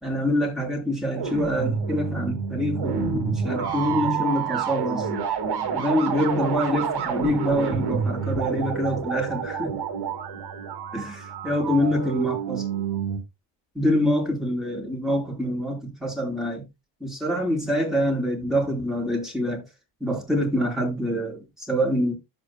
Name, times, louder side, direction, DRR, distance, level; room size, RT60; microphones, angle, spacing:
voice 1, 0.0-5.1 5.7-9.7 10.9-12.6 13.7-16.6 17.0-19.6 20.0-22.1, equal, ahead, 4.9 m, -25 dB
sound 1, 1.1-13.2, right 6 dB, 50° right, 2.5 m, -28 dB
13.5 x 5.4 x 2.3 m
supercardioid pair, 85°, 49 cm